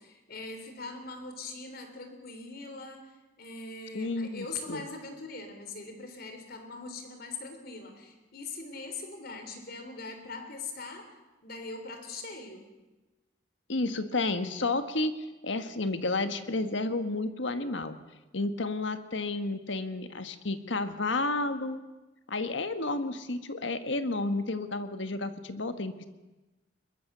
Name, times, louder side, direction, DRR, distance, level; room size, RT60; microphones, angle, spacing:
voice 1, 0.0-11.1 11.4-12.7, left 3 dB, 55° left, 7 dB, 3.6 m, -41 dB
voice 2, 3.9-4.8 13.7-18.0 18.3-21.8 22.3-26.1, left 2 dB, 75° left, 10 dB, 1.4 m, -31 dB
22.0 x 21.5 x 6.9 m, 1.1 s
head